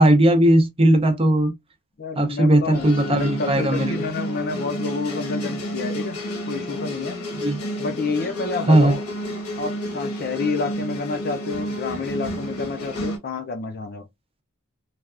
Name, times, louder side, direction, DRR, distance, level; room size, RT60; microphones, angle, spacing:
voice 1, 0.0-1.5 2.2-4.0 7.4-7.6 8.7-9.0, right 1 dB, 25° right, 0.6 m, -17 dB
voice 2, 2.0-6.2 6.5-7.2 7.8-9.0 9.6-14.1, left 4 dB, 45° left, 0.5 m, -29 dB
sound 1, 2.7-13.2, equal, 85° left, 1.1 m, -30 dB
3.3 x 2.3 x 2.4 m
head